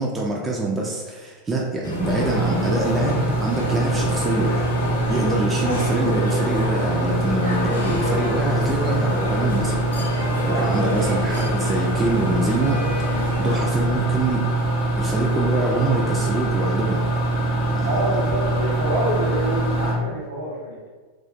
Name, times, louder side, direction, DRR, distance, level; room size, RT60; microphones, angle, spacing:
voice 1, 0.0-4.5 5.1-9.8 10.1-12.8 13.4-14.5 15.0-17.0 17.7-17.9, right 2 dB, 15° right, -2 dB, 0.3 m, -25 dB
sound 1, 1.8-13.6, left 1 dB, 70° left, 0.6 m, -29 dB
sound 2, 2.0-19.9, right 2 dB, 45° left, 0.8 m, -24 dB
voice 2, 5.3-5.8 6.0-6.2 7.9-8.2 10.4-11.2 17.7-20.9, right 1 dB, 65° right, -4 dB, 0.9 m, -27 dB
2.4 x 2.3 x 2.4 m, 1.4 s
figure-of-eight pair, 90°, 0 cm